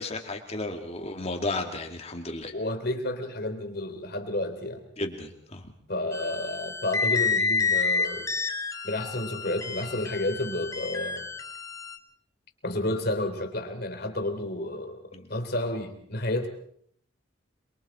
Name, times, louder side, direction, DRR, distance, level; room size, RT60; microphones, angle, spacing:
voice 1, 0.0-2.5 5.0-5.6 15.1-15.3, left 2 dB, 35° left, 3 dB, 2.5 m, -33 dB
voice 2, 2.5-4.8 5.9-8.3 8.8-11.3 12.6-16.5, left 1 dB, 55° left, 5 dB, 3.2 m, -31 dB
sound 1, 6.1-12.0, left 4 dB, 15° left, 1.8 m, -29 dB
28.0 x 22.5 x 4.4 m, 0.63 s
head